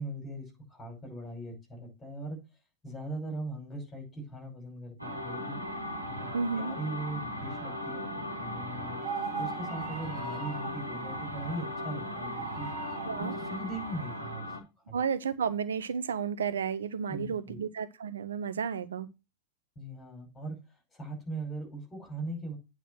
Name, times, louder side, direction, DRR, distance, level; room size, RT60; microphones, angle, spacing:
voice 1, 0.0-2.4 2.8-5.6 6.1-6.3 6.6-9.0 9.4-12.7 13.2-14.5 14.9-15.0 17.1-17.6 19.8-22.6, right 2 dB, 15° left, 5.3 m, -40 dB
sound 1, 5.0-14.6, left 1 dB, 85° right, 1.6 m, -38 dB
voice 2, 6.3-6.7 13.1-13.4 14.9-19.1, right 6 dB, 65° right, 0.7 m, -32 dB
sound 2, 9.0-10.8 12.1-13.1, right 6 dB, 25° right, 2.3 m, -39 dB
9.1 x 4.0 x 6.1 m
figure-of-eight pair, 90°, 0 cm